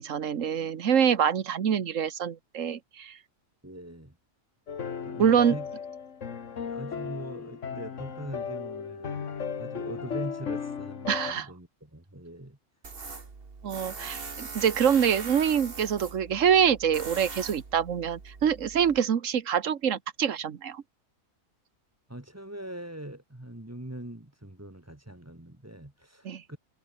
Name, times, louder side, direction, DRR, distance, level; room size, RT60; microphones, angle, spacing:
voice 1, 0.0-3.2 5.2-5.5 11.1-11.4 13.6-20.8 26.2-26.4, right 8 dB, 70° right, 1.6 m, -25 dB
voice 2, 3.6-4.2 5.0-5.7 6.7-12.6 22.1-26.6, right 1 dB, 10° right, 2.1 m, -42 dB
sound 1, 4.7-11.3, left 6 dB, 65° left, 1.8 m, -36 dB
Tools, 12.8-19.0, right 4 dB, 45° right, 2.0 m, -41 dB
omnidirectional pair, 1.4 m